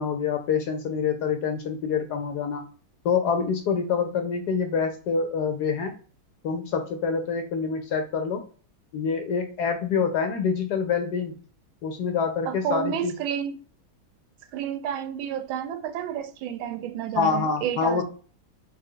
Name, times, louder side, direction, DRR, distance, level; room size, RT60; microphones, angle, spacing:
voice 1, 0.0-2.6 3.0-5.9 6.4-8.4 8.9-11.3 11.8-13.1 17.2-18.0, left 6 dB, 70° left, 1.0 m, -26 dB
voice 2, 12.5-13.6 14.5-18.0, right 9 dB, 85° right, 1.4 m, -30 dB
4.0 x 3.4 x 3.7 m
omnidirectional pair, 2.2 m